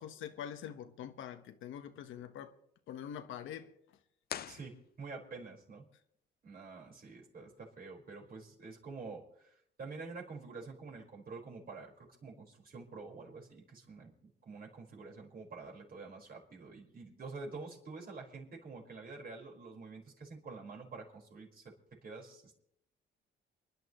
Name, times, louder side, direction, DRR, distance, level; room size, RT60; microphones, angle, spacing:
voice 1, 0.0-2.5 2.9-3.7 4.4-4.5, left 9 dB, 80° left, 1.3 m, -45 dB
sound 1, 4.2-5.4, left 10 dB, 50° left, 0.5 m, -45 dB
voice 2, 4.5-5.9 6.4-21.6 22.0-22.6, right 4 dB, 50° right, 4.9 m, -48 dB
30.0 x 11.0 x 3.1 m
cardioid pair, 90°, 20 cm